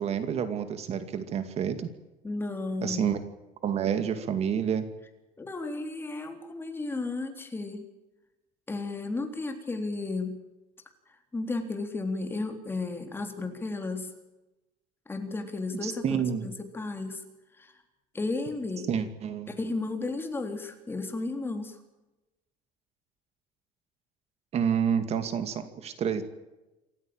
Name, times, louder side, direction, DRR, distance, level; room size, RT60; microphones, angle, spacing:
voice 1, 0.0-1.9 2.8-3.2 3.6-4.9 15.8-16.5 18.9-19.5 24.5-26.2, right 8 dB, 45° right, 10 dB, 2.3 m, -29 dB
voice 2, 2.2-3.0 5.4-7.9 8.7-10.4 11.3-14.1 15.1-17.2 17.5-17.7 18.1-18.9 19.5-21.8, left 3 dB, 15° left, 6 dB, 3.7 m, -33 dB
27.5 x 15.0 x 8.9 m, 1.0 s
cardioid pair, 145°, 15 cm